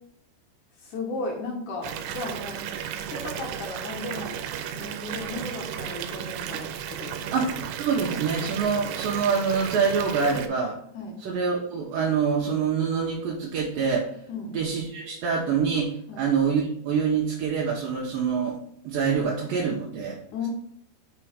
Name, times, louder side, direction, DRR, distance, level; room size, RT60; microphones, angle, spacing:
voice 1, 0.8-2.6 3.1-4.4 4.7-7.4 10.9-11.2 14.3-14.6 16.1-16.2 20.3-20.5, left 3 dB, 75° left, 1 dB, 1.8 m, -35 dB
Water tap faucet / Bathtub (filling or washing) / Fill (with liquid), 1.8-10.5, right 9 dB, 90° right, 2.8 m, -34 dB
voice 2, 7.3-10.8 11.2-14.1 14.5-18.6 18.8-20.2, right 6 dB, 70° right, -2 dB, 2.3 m, -25 dB
6.1 x 4.5 x 5.0 m, 0.69 s
omnidirectional pair, 4.9 m